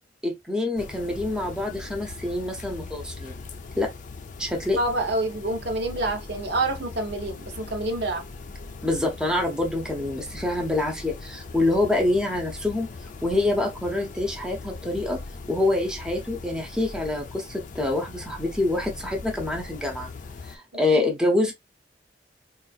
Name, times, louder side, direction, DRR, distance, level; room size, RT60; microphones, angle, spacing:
voice 1, 0.2-3.4 3.8-3.9 4.4-4.8 8.8-12.9 13.2-15.2 15.5-20.1 20.5-21.5, left 2 dB, 5° right, 0.6 m, -26 dB
sound 1, 0.8-20.6, left 3 dB, 45° left, 0.4 m, -40 dB
voice 2, 4.8-8.2 20.9-21.1, right 2 dB, 65° right, 0.8 m, -27 dB
3.7 x 2.4 x 2.3 m
head